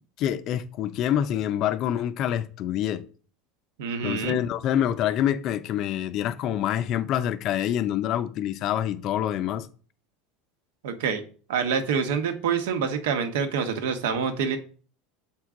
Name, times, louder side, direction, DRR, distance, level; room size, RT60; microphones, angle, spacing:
voice 1, 0.2-3.0 4.0-9.7, left 10 dB, 40° left, 0.5 m, -26 dB
voice 2, 3.8-4.4 10.8-11.2 11.5-14.6, right 6 dB, 85° right, 1.1 m, -26 dB
7.3 x 4.5 x 3.7 m
supercardioid pair, 165°, 0 cm